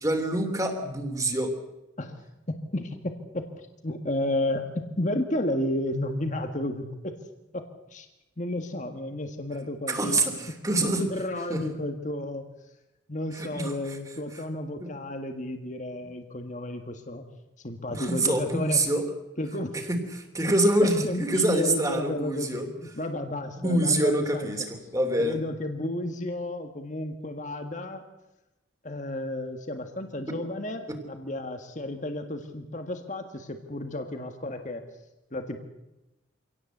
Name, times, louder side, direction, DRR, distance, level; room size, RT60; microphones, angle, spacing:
voice 1, 0.0-1.5 9.9-11.0 11.5-11.6 13.3-13.7 14.8-14.9 17.9-19.0 19.9-22.7 23.6-25.4 30.9-31.0, right 1 dB, 20° right, 5 dB, 3.1 m, -26 dB
voice 2, 2.5-3.5 3.8-7.2 7.5-7.7 7.9-8.1 8.4-10.2 11.0-12.4 13.1-17.2 17.6-18.8 19.4-19.8 20.8-24.5 25.2-28.0 28.8-34.8 35.3-35.6, left 1 dB, 40° left, 6 dB, 1.7 m, -32 dB
25.5 x 17.5 x 8.0 m, 0.97 s
head